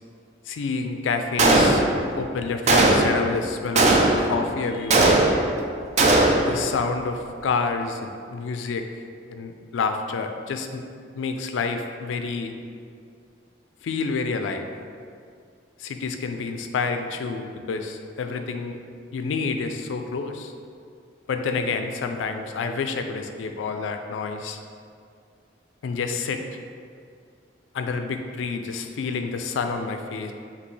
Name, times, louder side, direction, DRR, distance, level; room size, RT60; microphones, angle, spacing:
voice 1, 0.5-1.8 2.2-5.2 6.4-8.9 9.3-10.8 11.1-12.5 13.8-14.7 15.8-18.8 19.1-20.5 21.3-24.6 25.8-26.4 27.7-30.3, left 4 dB, 85° left, 6 dB, 0.3 m, -28 dB
Gunshot gunfire, 1.4-2.1 2.7-3.2 3.7-4.4 4.9-5.6 6.0-6.5, right 2 dB, 35° right, 0.4 m, -18 dB
5.1 x 2.7 x 3.1 m, 2.3 s
head